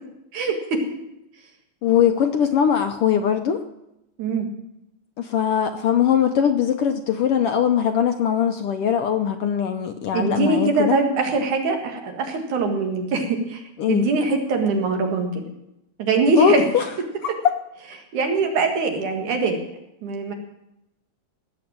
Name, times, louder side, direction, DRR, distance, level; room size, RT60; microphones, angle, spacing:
voice 1, 0.3-0.8 4.2-4.5 10.1-13.6 13.9-15.4 16.0-16.6 18.1-19.6 20.0-20.3, right 3 dB, 90° right, 4 dB, 3.4 m, -22 dB
voice 2, 1.8-3.6 5.2-11.0 13.8-14.1 16.4-16.8 17.2-17.3, left 8 dB, 70° left, 7 dB, 1.4 m, -21 dB
18.5 x 7.0 x 8.8 m, 0.87 s
omnidirectional pair, 3.3 m